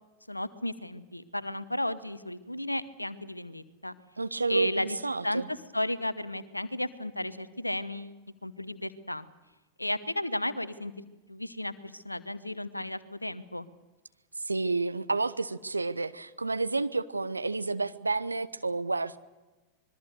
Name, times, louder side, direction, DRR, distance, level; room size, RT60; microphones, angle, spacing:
voice 1, 0.3-3.9 4.5-5.0 5.2-8.1 8.4-9.3 9.8-10.9 11.3-13.7, left 1 dB, 85° left, 16 dB, 1.1 m, -34 dB
voice 2, 4.2-5.5 14.4-19.2, right 3 dB, 80° right, 12 dB, 0.9 m, -30 dB
25.5 x 21.5 x 6.7 m, 1.2 s
figure-of-eight pair, 90°, 0 cm